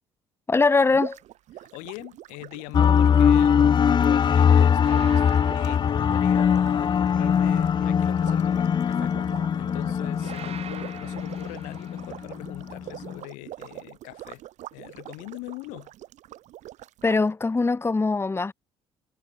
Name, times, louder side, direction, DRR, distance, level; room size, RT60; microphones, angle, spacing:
voice 1, 0.5-1.2 17.0-18.5, left 3 dB, 20° left, 1.1 m, -22 dB
sound 1, 0.6-1.0 4.8-6.9 10.2-12.2, right 8 dB, 55° right, 5.7 m, -46 dB
sound 2, 0.9-17.2, right 14 dB, 70° right, 6.8 m, -44 dB
voice 2, 1.6-14.4 14.7-15.9, left 28 dB, 85° left, 1.7 m, -41 dB
sound 3, 2.7-13.2, left 7 dB, 35° left, 0.5 m, -21 dB
supercardioid pair, 70°, 13 cm